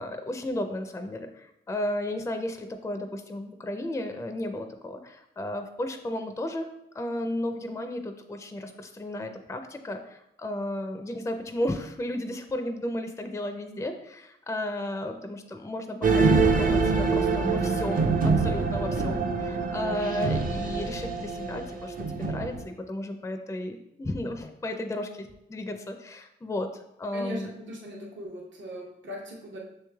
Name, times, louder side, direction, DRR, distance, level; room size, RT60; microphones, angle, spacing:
voice 1, 0.0-6.7 6.9-27.5, left 1 dB, 15° left, 6 dB, 0.4 m, -34 dB
sound 1, 16.0-22.6, right 4 dB, 45° right, 0.5 m, -25 dB
voice 2, 27.1-29.6, equal, 70° right, -2 dB, 0.9 m, -39 dB
6.4 x 3.1 x 2.3 m, 0.81 s
cardioid pair, 55°, 20 cm